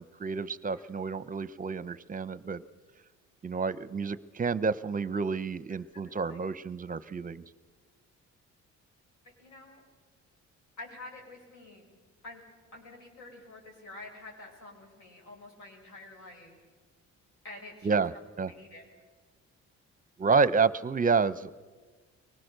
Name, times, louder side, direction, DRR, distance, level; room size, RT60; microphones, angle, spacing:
voice 1, 0.0-2.6 3.4-7.4 17.8-18.1 18.4-18.5 20.2-21.5, right 5 dB, 30° right, 17 dB, 0.7 m, -29 dB
voice 2, 5.9-6.4 9.4-9.8 10.8-11.9 12.2-12.4 12.7-16.6 17.4-18.0 18.5-18.8, left 2 dB, 75° left, 0 dB, 6.1 m, -48 dB
23.5 x 19.5 x 6.7 m, 1.4 s
cardioid pair, 90°, 30 cm